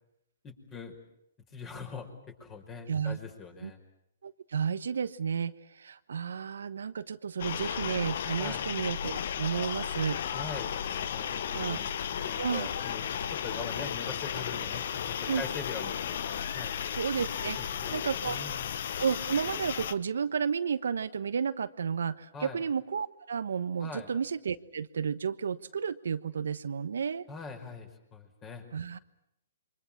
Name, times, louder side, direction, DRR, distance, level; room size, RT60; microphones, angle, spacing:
voice 1, 0.4-0.9 1.5-3.8 8.4-8.6 10.3-10.7 11.1-13.0 13.3-16.0 16.5-16.7 17.6-18.7 22.3-22.6 23.8-24.1 27.3-28.7, left 4 dB, 25° left, 5 dB, 5.4 m, -42 dB
voice 2, 2.9-3.2 3.6-3.7 4.2-10.2 11.5-11.8 12.4-12.7 15.3-15.4 17.0-17.6 17.9-18.4 19.0-27.2 28.7-29.0, right 6 dB, 75° right, 12 dB, 1.2 m, -32 dB
sound 1, 7.4-19.9, left 8 dB, 60° left, 1.1 m, -34 dB
28.5 x 24.0 x 7.4 m, 0.80 s
hypercardioid pair, 130°, 0 cm